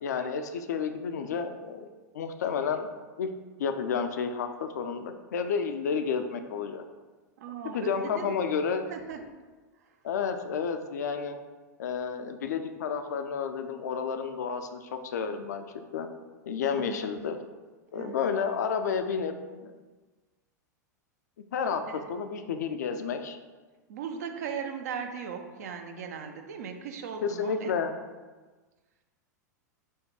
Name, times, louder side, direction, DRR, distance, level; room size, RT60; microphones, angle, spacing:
voice 1, 0.0-1.9 2.1-2.9 3.2-3.3 3.6-6.8 7.7-8.9 10.0-11.4 11.8-16.1 16.4-17.4 17.9-19.7 21.5-21.8 22.1-23.4 27.2-28.0, left 6 dB, 70° left, 8 dB, 0.4 m, -31 dB
voice 2, 7.4-8.4 8.9-9.3 9.8-9.9 16.7-17.1 18.0-18.3 21.9-22.1 23.9-27.7, right 6 dB, 65° right, 5 dB, 0.5 m, -38 dB
4.4 x 2.3 x 4.6 m, 1.3 s
figure-of-eight pair, 85°, 9 cm